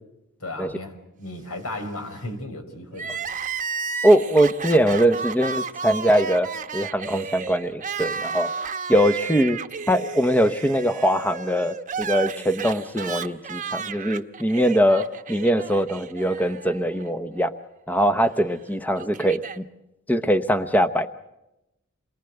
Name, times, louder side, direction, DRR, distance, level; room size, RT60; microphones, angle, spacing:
voice 1, 0.4-3.2, left 1 dB, 85° left, 6 dB, 5.3 m, -35 dB
Crying sobbing, 2.9-17.1 17.4-17.5 18.4-19.6, right 5 dB, 35° right, 1.1 m, -33 dB
voice 2, 4.0-6.5 6.7-8.5 8.9-9.6 9.9-17.5 17.9-19.6 20.1-21.1, equal, 10° left, 10 dB, 0.9 m, -21 dB
28.0 x 22.5 x 8.0 m, 0.91 s
head